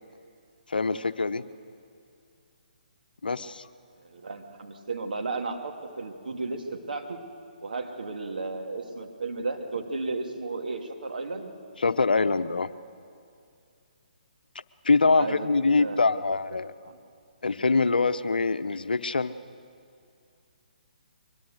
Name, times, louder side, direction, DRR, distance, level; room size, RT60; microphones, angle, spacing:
voice 1, 0.7-1.4 3.2-3.7 11.8-12.7 14.5-16.7 17.4-19.3, left 3 dB, 80° left, 12 dB, 0.8 m, -24 dB
voice 2, 4.0-7.2 7.6-11.5 15.1-16.0 16.9-17.0, right 3 dB, 70° right, 3 dB, 2.3 m, -34 dB
23.5 x 21.5 x 6.5 m, 2.4 s
figure-of-eight pair, 140°, 5 cm